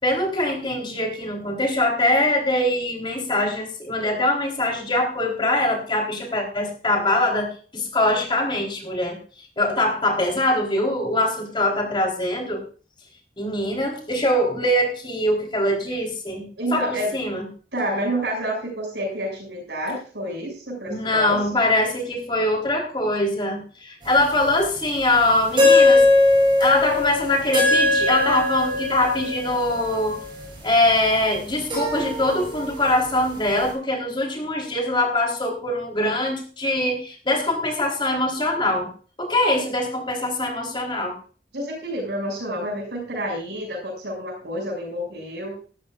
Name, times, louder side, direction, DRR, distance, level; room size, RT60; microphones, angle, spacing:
voice 1, 0.0-9.2 9.6-12.6 13.4-17.4 20.9-26.0 26.6-30.2 30.6-38.9 39.2-41.1, left 1 dB, 30° left, 1 dB, 3.9 m, -23 dB
voice 2, 16.6-17.1 17.7-21.5 41.5-45.5, right 1 dB, 80° right, 0 dB, 6.5 m, -29 dB
sound 1, 24.2-24.3 25.6-30.5 31.7-33.2, left 2 dB, 30° right, 7.9 m, -20 dB
19.0 x 13.5 x 2.5 m, 0.39 s
head